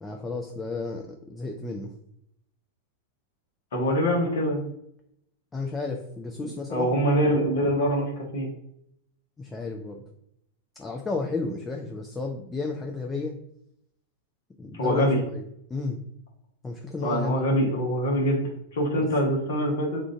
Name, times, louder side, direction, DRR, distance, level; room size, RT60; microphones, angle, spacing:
voice 1, 0.0-1.9 5.5-6.9 9.4-10.0 10.8-13.4 14.6-15.4 15.7-16.0 16.6-17.3 19.0-19.1, left 3 dB, 15° left, 1 dB, 0.5 m, -32 dB
voice 2, 3.7-4.6 6.7-8.5 14.8-15.2 17.0-20.0, equal, 60° left, -2 dB, 1.1 m, -24 dB
3.7 x 2.5 x 4.3 m, 0.75 s
figure-of-eight pair, 90°, 0 cm